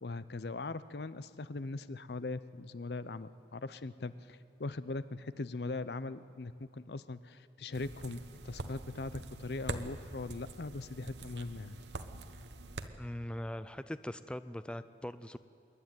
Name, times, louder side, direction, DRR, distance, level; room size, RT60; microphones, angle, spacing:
voice 1, 0.0-8.2 8.4-11.8, left 3 dB, 70° left, 15 dB, 0.6 m, -40 dB
sound 1, 7.7-12.9, right 2 dB, 85° right, 1.0 m, -44 dB
voice 2, 13.0-15.4, left 1 dB, 5° left, 13 dB, 0.4 m, -41 dB
27.0 x 11.5 x 9.4 m, 2.8 s
head